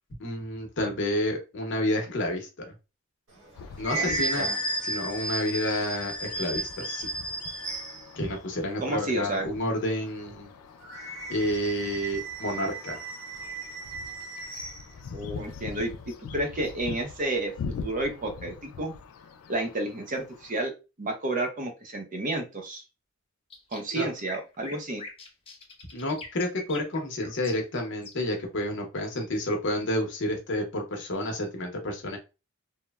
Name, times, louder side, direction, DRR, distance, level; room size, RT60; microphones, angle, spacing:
voice 1, 0.2-2.7 3.8-4.5 4.8-7.1 8.2-10.5 11.3-13.0 23.9-24.1 25.9-32.2, left 1 dB, 60° left, 3 dB, 0.8 m, -30 dB
sound 1, 3.3-8.1 10.8-14.8, right 2 dB, 65° right, 1.0 m, -34 dB
sound 2, 3.6-20.6, left 5 dB, 90° left, 0.3 m, -43 dB
voice 2, 3.9-4.6 8.8-9.5 15.1-15.9 16.3-18.9 19.5-20.7 21.0-22.8 23.7-25.0, right 2 dB, 40° right, 4 dB, 0.6 m, -31 dB
sound 3, 23.5-28.5, left 3 dB, 25° left, 0.6 m, -44 dB
3.0 x 2.0 x 2.2 m, 0.29 s
head